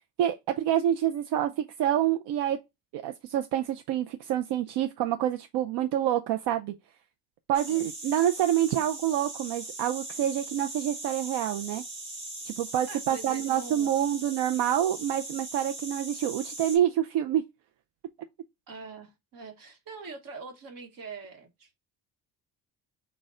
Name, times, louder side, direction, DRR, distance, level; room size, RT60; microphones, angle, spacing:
voice 1, 0.2-2.6 2.9-6.7 7.5-11.8 12.5-17.4, right 11 dB, 75° right, 0.5 m, -27 dB
sound 1, 7.5-16.8, right 2 dB, 30° right, 1.7 m, -40 dB
voice 2, 12.9-13.9 18.7-21.7, right 4 dB, 55° right, 1.2 m, -43 dB
6.2 x 2.3 x 3.7 m
cardioid pair, 155°, 41 cm